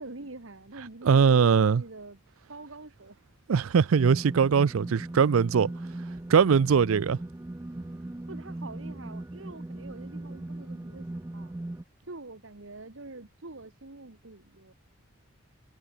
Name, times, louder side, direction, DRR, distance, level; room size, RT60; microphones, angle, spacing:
voice 1, 0.0-2.2 2.5-3.2 8.3-11.6 12.0-14.7, right 2 dB, 70° right, 1.5 m, -45 dB
voice 2, 1.0-1.8 3.5-5.7 6.3-7.2, right 6 dB, 85° right, 0.4 m, -21 dB
sound 1, 4.0-11.8, right 1 dB, 15° right, 0.3 m, -39 dB
head